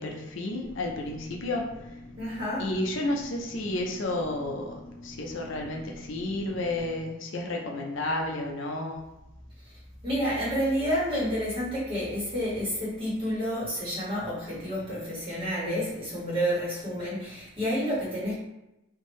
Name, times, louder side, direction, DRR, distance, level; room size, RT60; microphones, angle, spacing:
voice 1, 0.0-2.0 2.6-9.0, left 2 dB, 60° left, 1 dB, 0.5 m, -32 dB
sound 1, 0.6-7.0, left 1 dB, 35° left, 0.9 m, -46 dB
voice 2, 2.2-2.7 10.0-18.3, equal, 25° right, -8 dB, 1.4 m, -29 dB
3.5 x 2.6 x 3.1 m, 0.93 s
head